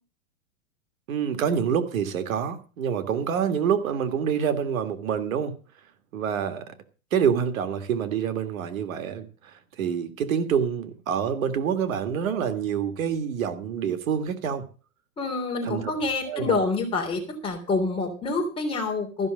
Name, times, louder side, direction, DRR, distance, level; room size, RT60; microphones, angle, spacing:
voice 1, 1.1-5.5 6.1-6.7 7.1-14.6 15.6-15.8 16.3-16.6, right 7 dB, 70° right, 1.8 m, -27 dB
voice 2, 15.2-19.3, left 3 dB, 15° left, 3.2 m, -27 dB
14.5 x 6.0 x 7.6 m
supercardioid pair, 155°, 42 cm